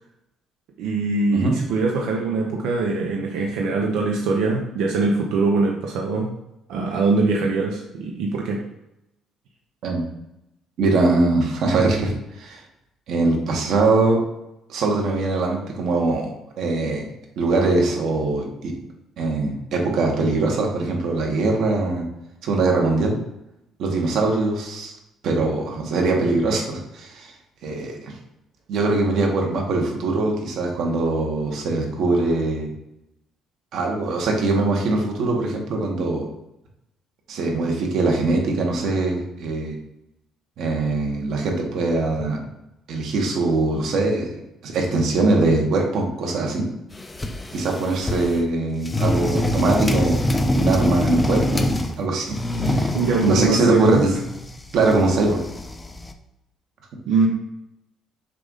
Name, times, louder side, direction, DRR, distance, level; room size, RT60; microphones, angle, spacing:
voice 1, 0.8-6.3 6.7-8.6 52.9-54.2 57.1-57.3, right 3 dB, 85° right, 0 dB, 0.8 m, -22 dB
voice 2, 10.8-12.6 13.1-14.2 14.7-17.0 17.4-18.7 19.2-22.0 22.4-23.2 23.8-24.9 25.2-27.3 27.6-28.1 28.7-32.7 33.7-36.3 37.3-39.7 40.6-42.4 42.9-44.3 44.6-46.7 47.5-50.2 50.5-52.9 53.2-54.1 54.7-55.4, right 2 dB, 55° right, 0 dB, 1.4 m, -22 dB
Dragging Furniture, 46.9-48.4 48.8-52.0 52.3-56.1, left 1 dB, 10° left, 0.4 m, -25 dB
6.6 x 2.6 x 5.5 m, 0.87 s
cardioid pair, 155°, 0 cm